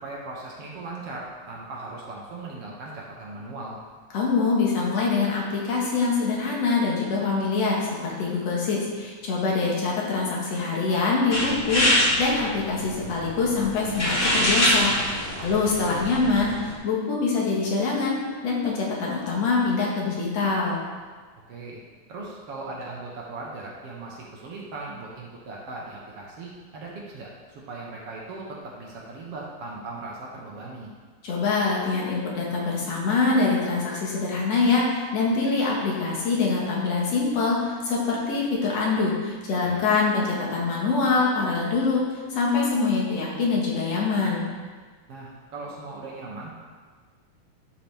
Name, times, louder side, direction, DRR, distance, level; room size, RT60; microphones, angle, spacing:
voice 1, 0.0-3.8 15.4-15.7 21.5-21.8 22.1-27.3 27.7-30.9 39.6-39.8 45.1-46.6, right 3 dB, 60° right, -3 dB, 2.0 m, -38 dB
voice 2, 4.1-20.8 31.2-42.0 42.3-44.5, left 4 dB, 65° left, -4 dB, 2.6 m, -24 dB
sound 1, 11.3-16.7, equal, 25° left, 1.2 m, -25 dB
12.0 x 5.8 x 3.5 m, 1.5 s
omnidirectional pair, 3.3 m